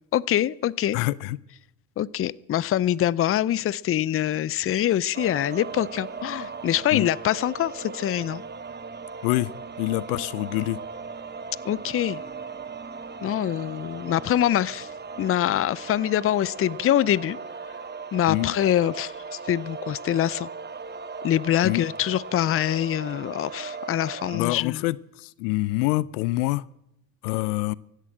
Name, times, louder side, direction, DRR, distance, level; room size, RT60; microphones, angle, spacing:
voice 1, 0.1-1.0 2.0-8.4 11.6-12.2 13.2-14.9 15.2-17.4 18.1-20.5 21.2-24.8, left 11 dB, 30° left, 22 dB, 0.6 m, -24 dB
voice 2, 0.9-1.4 6.9-7.1 9.2-9.5 9.8-10.8 18.3-18.5 21.6-21.8 24.3-26.6 27.2-27.7, left 20 dB, 75° left, 22 dB, 0.6 m, -26 dB
sound 1, 5.1-24.4, right 5 dB, 20° right, 1.0 m, -38 dB
16.0 x 11.5 x 7.8 m, 0.83 s
hypercardioid pair, 70°, 46 cm